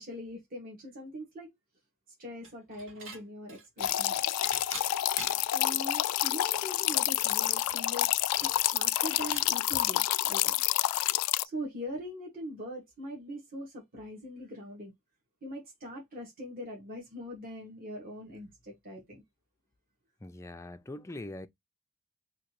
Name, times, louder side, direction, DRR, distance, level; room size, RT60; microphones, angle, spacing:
voice 1, 0.0-1.5 2.2-4.3 5.5-8.1 8.4-10.6 11.4-14.9 15.4-19.2, equal, 40° right, 1.8 m, -42 dB
Dishes pots and pans / Chink clink, 2.4-3.2 3.5-5.6 6.0-6.1 6.4-9.5, right 3 dB, 60° right, 1.8 m, -46 dB
sound 1, 3.8-11.4, left 14 dB, 85° left, 0.3 m, -28 dB
voice 2, 20.2-21.5, left 1 dB, 15° left, 0.4 m, -42 dB
5.1 x 2.8 x 3.0 m
head